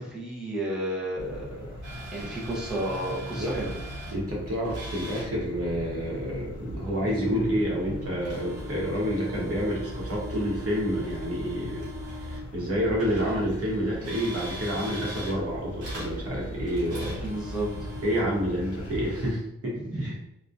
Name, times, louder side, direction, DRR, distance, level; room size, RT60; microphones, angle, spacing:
voice 1, 0.0-1.8 2.1-3.8 17.2-17.7 19.7-20.2, right 1 dB, ahead, -6 dB, 0.6 m, -32 dB
sound 1, 1.2-19.3, equal, 80° left, 0.7 m, -39 dB
sound 2, 1.8-4.2 4.6-5.3 8.2-12.5 13.0-15.4 15.8-18.2, equal, 90° right, 1.0 m, -42 dB
voice 2, 4.1-11.9 12.2-17.2 18.0-20.1, equal, 50° right, -4 dB, 0.9 m, -29 dB
2.6 x 2.1 x 2.3 m, 0.81 s
wide cardioid pair, 100°, 30 cm